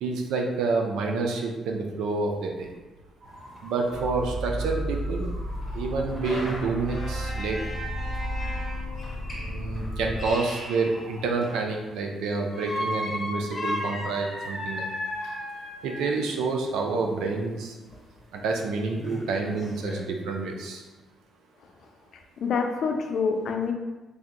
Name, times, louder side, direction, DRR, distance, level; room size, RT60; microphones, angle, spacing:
voice 1, 0.0-2.7 3.6-5.3 5.7-7.6 9.4-14.8 15.8-17.7 18.3-20.8, right 3 dB, 85° right, 2 dB, 0.5 m, -28 dB
sound 1, 3.2-11.5, right 1 dB, 60° right, 1.0 m, -48 dB
sound 2, 3.3-3.4 3.6-3.7 4.2-4.3 5.6-11.8 12.5-16.2 17.9-18.0 18.5-18.6 18.9-20.0, left 1 dB, 20° left, 0.9 m, -35 dB
sound 3, 3.9-10.3, equal, ahead, 0.4 m, -33 dB
voice 2, 22.1-23.7, left 5 dB, 65° left, 4 dB, 0.5 m, -27 dB
3.5 x 2.6 x 3.8 m, 1.2 s
cardioid pair, 90°, 0 cm